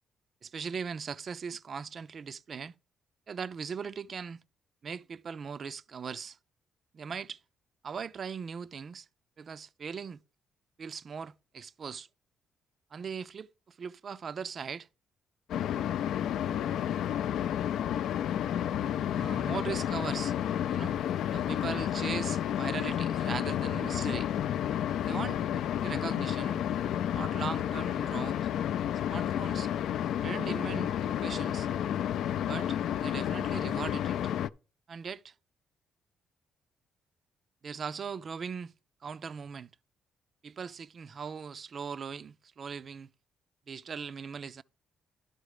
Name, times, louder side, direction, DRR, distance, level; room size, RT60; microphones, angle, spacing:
voice 1, 0.4-2.7 3.3-4.4 4.8-6.4 6.9-7.4 7.8-9.1 9.4-10.2 10.8-12.1 12.9-14.9 19.1-20.4 20.7-21.0 21.3-24.3 25.1-26.6 27.1-28.5 29.1-29.7 30.2-31.7 32.5-34.3 34.9-35.3 37.6-38.7 39.0-39.7 40.4-43.1 43.7-44.6, right 6 dB, 50° right, 0.4 m, -39 dB
sound 1, 15.5-34.5, left 10 dB, 75° left, 0.3 m, -31 dB
11.5 x 4.0 x 4.9 m
cardioid pair, 90°, 0 cm